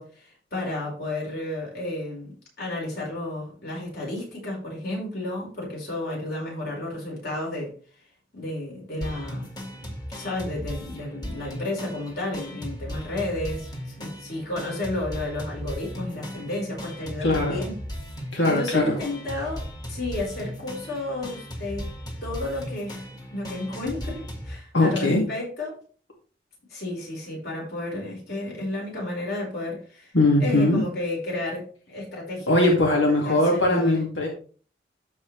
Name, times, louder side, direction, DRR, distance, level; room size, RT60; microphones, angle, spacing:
voice 1, 0.0-7.7 8.3-9.5 10.1-17.8 18.4-21.9 22.2-25.8 26.7-30.1 30.4-32.5 32.9-34.0, left 2 dB, 55° left, -3 dB, 4.8 m, -32 dB
sound 1, 9.0-24.6, equal, 20° left, 1.8 m, -37 dB
voice 2, 17.2-17.6 18.3-18.9 24.7-25.2 30.1-30.8 32.5-34.3, left 2 dB, 85° left, -2 dB, 2.3 m, -20 dB
14.0 x 4.7 x 3.3 m, 0.41 s
head